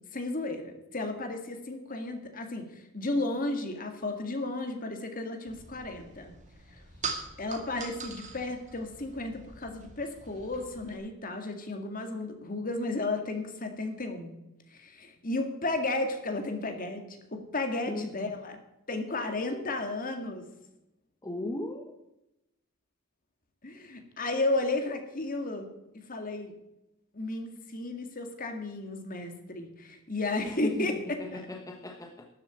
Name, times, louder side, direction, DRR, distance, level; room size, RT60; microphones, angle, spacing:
voice 1, 0.1-6.3 6.7-6.8 7.4-14.3 14.7-17.0 17.3-18.6 18.9-20.4 23.6-26.5 27.1-31.0 31.3-31.4, left 2 dB, 40° left, 6 dB, 2.0 m, -33 dB
sound 1, 5.5-11.0, right 4 dB, 35° right, 2.2 m, -42 dB
voice 2, 17.9-18.3 21.2-21.9 30.4-32.3, left 1 dB, 15° left, 2 dB, 1.1 m, -37 dB
13.0 x 7.2 x 9.0 m, 0.91 s
head